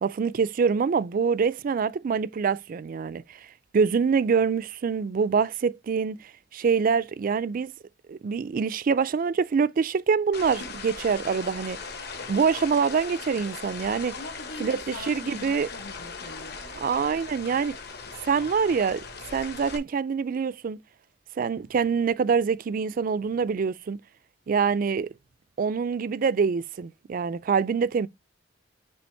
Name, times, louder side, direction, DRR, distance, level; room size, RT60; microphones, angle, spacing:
voice 1, 0.0-3.4 3.7-6.2 6.5-7.7 8.1-11.8 12.3-14.1 14.6-15.7 16.7-17.7 18.2-19.0 19.3-20.8 21.4-24.0 24.5-25.1 25.6-28.1, right 5 dB, 45° right, 0.3 m, -25 dB
sound 1, 10.3-19.8, left 4 dB, 60° left, 1.3 m, -39 dB
voice 2, 14.1-16.6, left 2 dB, 85° left, 1.1 m, -42 dB
6.9 x 3.3 x 4.5 m
head